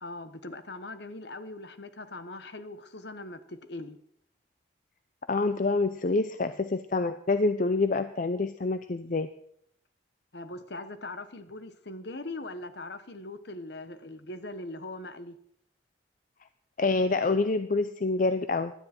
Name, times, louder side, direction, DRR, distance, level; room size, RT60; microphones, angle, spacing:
voice 1, 0.0-4.0 10.3-15.4, left 2 dB, 60° left, 11 dB, 1.1 m, -41 dB
voice 2, 5.3-9.3 16.8-18.7, left 3 dB, 45° left, 11 dB, 0.5 m, -27 dB
17.5 x 12.5 x 4.4 m, 0.71 s
head